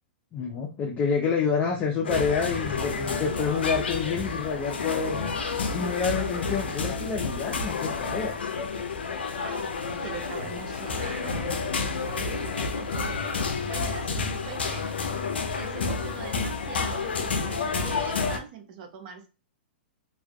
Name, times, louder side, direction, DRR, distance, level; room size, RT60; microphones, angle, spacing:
voice 1, 0.3-5.4 5.7-8.3, left 5 dB, 30° left, -1 dB, 0.5 m, -28 dB
sound 1, 2.0-18.4, left 4 dB, 85° left, 0.5 m, -30 dB
voice 2, 9.4-14.9 15.5-19.3, right 6 dB, 50° right, 5 dB, 0.6 m, -42 dB
2.4 x 2.4 x 2.2 m, 0.32 s
hypercardioid pair, 120°, 6 cm